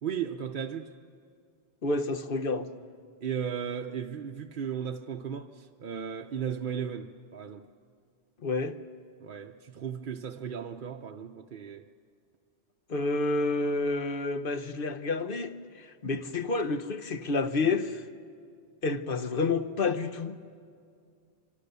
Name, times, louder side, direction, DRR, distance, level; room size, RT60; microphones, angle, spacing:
voice 1, 0.0-0.9 3.2-7.7 9.2-11.9, right 8 dB, 50° right, 0.8 m, -35 dB
voice 2, 1.8-2.7 8.4-8.8 12.9-18.0 18.8-20.4, left 3 dB, 50° left, 1.1 m, -29 dB
25.0 x 24.5 x 6.8 m
omnidirectional pair, 1.2 m